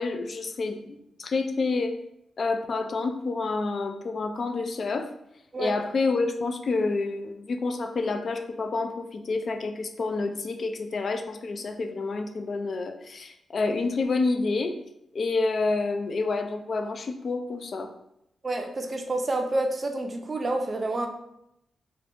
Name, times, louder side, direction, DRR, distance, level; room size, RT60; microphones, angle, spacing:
voice 1, 0.0-2.0 2.4-5.1 5.6-14.7 15.1-17.9, left 3 dB, 50° left, 7 dB, 0.3 m, -28 dB
voice 2, 18.4-21.1, right 2 dB, 35° right, 4 dB, 0.4 m, -28 dB
2.5 x 2.5 x 3.4 m, 0.81 s
cardioid pair, 110°, 0 cm